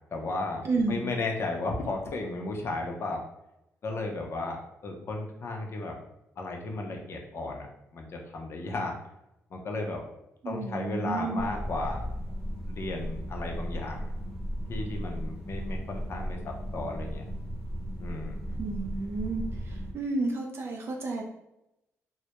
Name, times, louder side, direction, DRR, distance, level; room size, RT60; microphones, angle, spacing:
voice 1, 0.1-0.6 0.9-3.2 3.8-6.0 6.4-8.9 9.5-10.0 10.4-12.1 12.7-14.1 14.7-17.2 18.0-18.6, left 2 dB, 50° left, 2 dB, 0.5 m, -34 dB
voice 2, 0.6-1.1 10.4-11.4 18.6-21.2, right 3 dB, 50° right, 1 dB, 0.4 m, -31 dB
sound 1, 11.4-19.9, equal, 10° right, 0.9 m, -36 dB
2.2 x 2.0 x 2.8 m, 0.86 s
cardioid pair, 105°, 5 cm